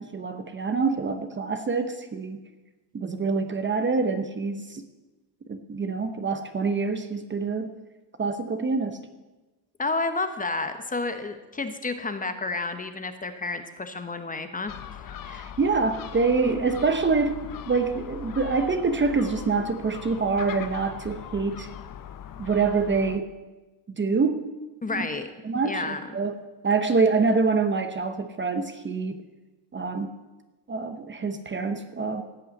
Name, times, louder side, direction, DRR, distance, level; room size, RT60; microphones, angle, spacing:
voice 1, 0.0-2.4 2.9-4.8 5.5-7.7 8.2-9.0 15.3-21.7 22.4-23.3 23.9-24.5 24.9-25.0 25.4-26.4 26.6-29.2 29.7-30.1 30.7-32.2, right 4 dB, 25° right, 8 dB, 0.8 m, -26 dB
voice 2, 9.8-15.4 24.8-25.3 25.6-26.2, left 3 dB, 20° left, 8 dB, 1.0 m, -31 dB
Gull seagull, 14.7-23.2, left 9 dB, 45° left, 0.9 m, -40 dB
16.5 x 5.6 x 8.5 m, 1.2 s
cardioid pair, 120°, 46 cm